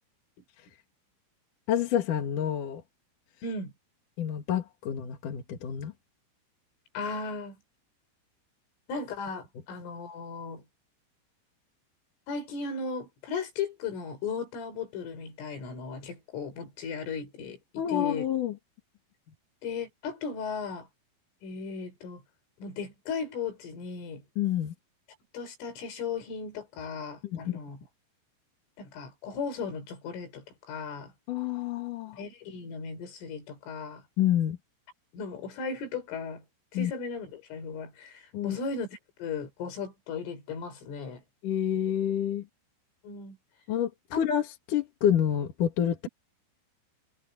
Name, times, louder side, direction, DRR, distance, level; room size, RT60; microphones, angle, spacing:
voice 1, 1.7-2.8 4.2-5.9 17.8-18.5 24.4-24.7 27.2-27.6 31.3-32.2 34.2-34.6 36.7-36.9 38.3-38.6 41.4-42.4 43.7-46.0, left 10 dB, 55° left, 2.7 m, -28 dB
voice 2, 3.4-3.7 7.0-7.6 8.9-10.6 12.3-17.6 17.9-18.3 19.6-20.9 21.4-22.2 22.6-24.2 25.3-27.8 28.8-31.1 32.1-34.0 35.1-36.4 36.7-41.2 43.0-43.4 44.1-44.2, left 5 dB, 85° left, 7.4 m, -36 dB
omnidirectional pair, 5.6 m